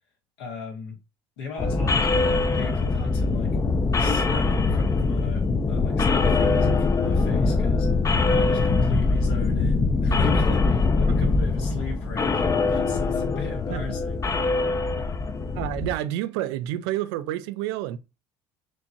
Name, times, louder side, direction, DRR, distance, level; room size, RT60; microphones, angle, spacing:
voice 1, 0.4-1.0 1.4-3.5 4.0-7.9 8.3-14.2, left 5 dB, 85° left, 1.8 m, -36 dB
sound 1, 1.6-15.9, left 3 dB, 25° left, 0.5 m, -23 dB
voice 2, 15.5-18.0, right 13 dB, 80° right, 0.4 m, -29 dB
4.5 x 2.9 x 2.7 m
supercardioid pair, 75°, 13 cm